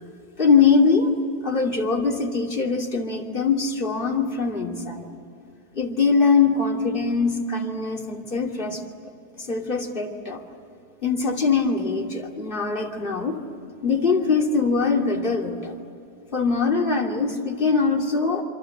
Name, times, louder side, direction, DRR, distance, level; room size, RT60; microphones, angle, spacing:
voice 1, 0.4-1.1 1.4-5.1 5.7-8.8 9.4-10.4 11.0-13.4 13.8-15.7 16.3-18.4, left 4 dB, 30° left, 1 dB, 2.7 m, -22 dB
27.0 x 26.0 x 7.9 m, 2.7 s
omnidirectional pair, 1.9 m